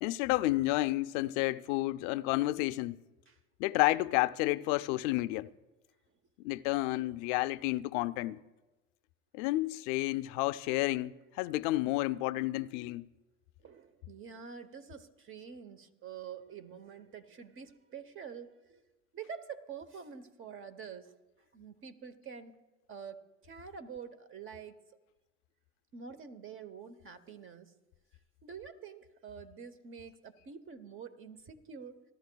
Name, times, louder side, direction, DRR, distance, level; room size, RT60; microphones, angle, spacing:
voice 1, 0.0-3.0 3.6-5.5 6.4-8.4 9.3-13.0, left 18 dB, 90° left, 0.5 m, -31 dB
voice 2, 13.6-18.8 19.1-21.1 21.5-22.6 22.9-24.8 25.9-27.7 28.4-32.0, right 6 dB, 35° right, 0.9 m, -47 dB
27.5 x 12.5 x 2.3 m
cardioid pair, 130°, 36 cm